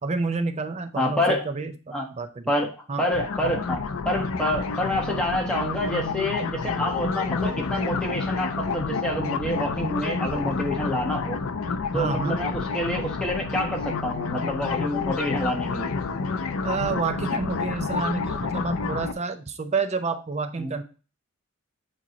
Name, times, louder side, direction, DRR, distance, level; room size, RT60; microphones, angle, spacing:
voice 1, 0.0-2.5 2.9-3.0 11.9-12.4 16.6-20.8, right 4 dB, 30° right, 8 dB, 0.5 m, -29 dB
voice 2, 0.9-1.4 1.9-2.1 2.5-2.7 3.0-11.4 11.9-15.9 20.6-20.7, left 1 dB, 5° left, -1 dB, 1.4 m, -27 dB
sound 1, 3.1-19.1, left 4 dB, 70° left, 0.5 m, -29 dB
8.5 x 3.0 x 3.9 m, 0.35 s
head